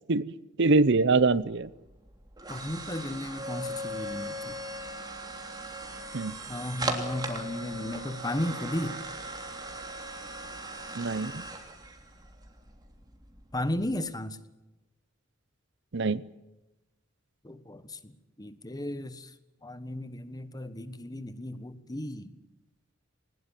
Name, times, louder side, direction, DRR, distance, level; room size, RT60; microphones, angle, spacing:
voice 1, 0.6-1.7 6.1-6.4 11.0-11.4 15.9-16.2, right 3 dB, 60° right, 0.8 m, -24 dB
sound 1, 1.0-14.0, right 1 dB, 20° right, 3.2 m, -39 dB
voice 2, 2.5-4.6 6.5-9.0 13.5-14.4 17.4-19.3 19.6-22.4, left 1 dB, 20° left, 1.3 m, -35 dB
21.0 x 20.5 x 7.5 m
head